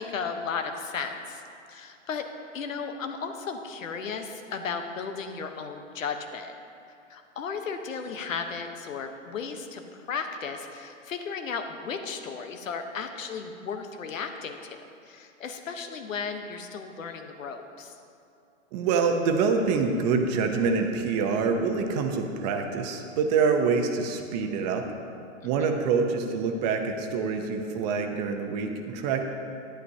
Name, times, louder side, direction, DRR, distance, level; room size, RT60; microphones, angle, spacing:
voice 1, 0.0-1.4 1.7-2.3 2.5-6.5 7.1-14.8 15.0-17.9 25.4-25.7, left 5 dB, 85° left, 6 dB, 1.0 m, -35 dB
voice 2, 18.7-24.9 25.4-29.2, right 5 dB, 35° right, 5 dB, 0.8 m, -26 dB
11.5 x 10.0 x 2.8 m, 2.5 s
hypercardioid pair, 140°, 38 cm